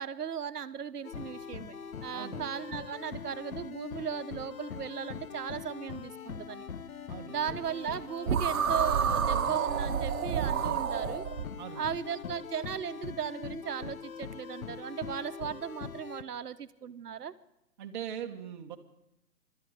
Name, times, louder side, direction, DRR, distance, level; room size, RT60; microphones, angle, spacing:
voice 1, 0.0-1.8 2.0-6.7 7.3-11.2 11.7-17.3, right 8 dB, 80° right, 12 dB, 1.1 m, -37 dB
sound 1, 1.0-16.2, left 7 dB, 60° left, 1.1 m, -42 dB
voice 2, 2.1-2.8 7.1-7.6 11.6-12.0 17.8-18.8, right 9 dB, 30° right, 5 dB, 1.4 m, -42 dB
sound 2, 8.3-11.5, right 7 dB, 60° right, 1.2 m, -29 dB
23.5 x 12.5 x 4.8 m, 0.85 s
hypercardioid pair, 155°, 46 cm